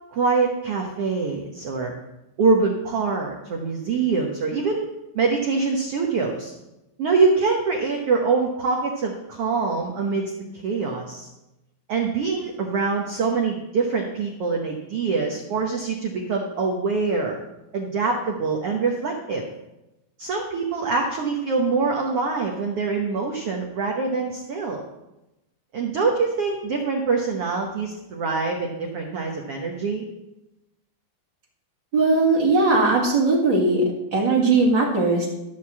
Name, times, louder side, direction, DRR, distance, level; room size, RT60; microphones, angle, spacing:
voice 1, 0.1-1.9 2.4-4.9 5.1-6.5 7.0-11.3 11.9-17.4 17.7-19.5 20.2-24.8 25.7-30.0, right 4 dB, 75° right, 0 dB, 1.3 m, -24 dB
voice 2, 31.9-33.8 34.1-35.3, right 3 dB, 40° right, -3 dB, 2.0 m, -19 dB
13.5 x 4.7 x 7.2 m, 0.96 s
omnidirectional pair, 4.2 m